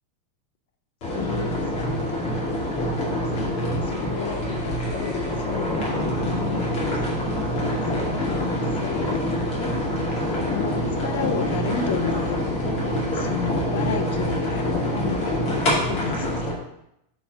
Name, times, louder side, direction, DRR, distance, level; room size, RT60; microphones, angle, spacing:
sound 1, 1.0-16.5, left 1 dB, 35° left, 2.2 m, -25 dB
voice 1, 1.1-1.9 3.2-7.0 7.9-9.6 10.5-12.4 13.1-16.3, left 6 dB, 65° left, 7 dB, 0.8 m, -32 dB
6.1 x 4.1 x 5.0 m, 0.82 s
supercardioid pair, 175°, 0 cm